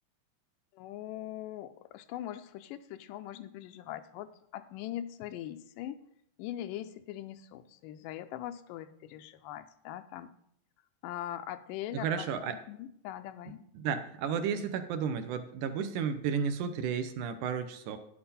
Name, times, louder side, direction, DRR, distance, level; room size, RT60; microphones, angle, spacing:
voice 1, 0.7-6.0 6.4-10.3 11.0-12.3 12.7-13.6, left 12 dB, 85° left, 10 dB, 2.2 m, -41 dB
voice 2, 11.9-12.6 13.8-18.0, right 7 dB, 75° right, 8 dB, 2.1 m, -33 dB
10.5 x 7.8 x 4.2 m, 0.70 s
omnidirectional pair, 3.8 m